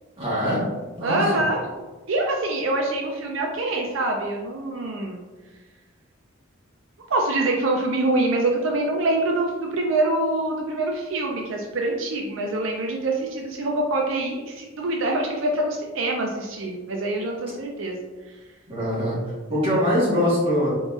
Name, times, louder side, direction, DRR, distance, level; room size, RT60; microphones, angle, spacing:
voice 1, 0.2-0.7 1.0-1.2 18.7-19.2 19.5-20.7, equal, 25° right, -7 dB, 1.5 m, -22 dB
voice 2, 1.0-1.6 2.1-5.2 7.1-18.0, right 2 dB, 75° right, 1 dB, 0.5 m, -25 dB
3.9 x 3.8 x 2.4 m, 1.3 s
head